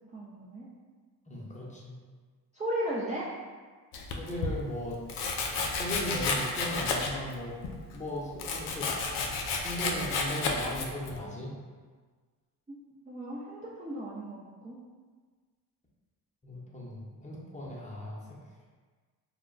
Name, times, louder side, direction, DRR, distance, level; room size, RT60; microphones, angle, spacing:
voice 1, 0.1-0.7 2.5-3.3 13.1-14.8, right 1 dB, 15° right, -7 dB, 0.5 m, -35 dB
voice 2, 1.3-1.9 4.2-5.0 5.7-7.6 7.9-8.9 9.5-11.5 16.4-18.4, left 1 dB, 15° left, -5 dB, 0.8 m, -37 dB
Domestic sounds home sounds, 3.9-4.5 5.1-7.3 7.6-11.2, left 4 dB, 80° left, 0.5 m, -31 dB
2.2 x 2.1 x 3.7 m, 1.5 s
supercardioid pair, 55°, 42 cm